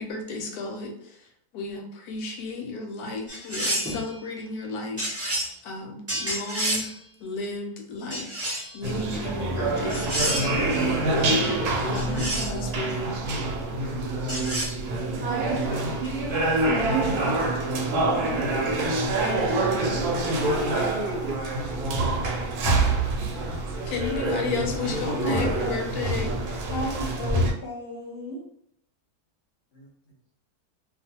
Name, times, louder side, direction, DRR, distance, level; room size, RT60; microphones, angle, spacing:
voice 1, 0.0-8.5 8.7-10.5 11.1-13.2 23.9-26.4, left 3 dB, 75° left, 2 dB, 1.0 m, -34 dB
sound 1, 3.3-4.0 5.0-5.5 6.1-6.9 8.1-8.8 9.9-10.6 11.9-12.6 14.3-14.7, right 1 dB, 20° right, 0.4 m, -29 dB
sound 2, 8.8-27.5, right 2 dB, 80° right, 1.1 m, -26 dB
voice 2, 15.3-18.2 19.7-21.5 23.0-23.3, right 2 dB, 60° right, -6 dB, 0.6 m, -36 dB
voice 3, 25.2-25.7 26.7-28.4 29.7-29.9, equal, 55° left, -3 dB, 0.8 m, -33 dB
2.4 x 2.4 x 2.7 m, 0.70 s
omnidirectional pair, 1.7 m